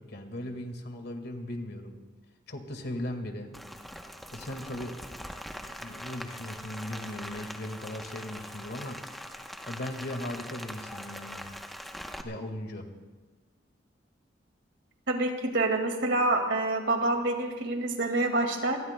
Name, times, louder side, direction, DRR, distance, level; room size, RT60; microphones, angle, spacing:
voice 1, 0.0-2.0 2.5-3.6 4.3-5.0 5.7-9.0 9.7-11.4 12.2-12.9, left 1 dB, 55° left, 5 dB, 1.8 m, -38 dB
Rain, 3.5-12.2, equal, ahead, 0.8 m, -42 dB
voice 2, 15.1-18.8, right 2 dB, 70° right, 4 dB, 2.0 m, -27 dB
27.0 x 20.0 x 2.2 m, 1.3 s
head